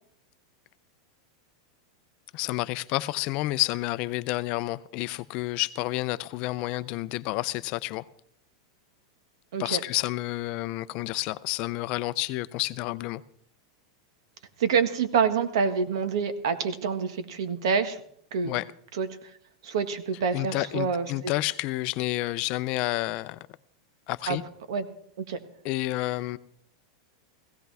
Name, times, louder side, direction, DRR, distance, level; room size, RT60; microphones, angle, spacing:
voice 1, 2.3-8.0 9.6-13.2 18.4-18.7 20.3-23.4 24.1-24.4 25.6-26.4, left 19 dB, 40° left, 0.5 m, -30 dB
voice 2, 14.6-18.0 18.3-18.5 19.0-19.1 19.6-21.3 24.3-24.4 24.7-24.8 25.3-25.4, right 6 dB, 75° right, 1.6 m, -27 dB
16.5 x 16.5 x 3.5 m
supercardioid pair, 160°, 3 cm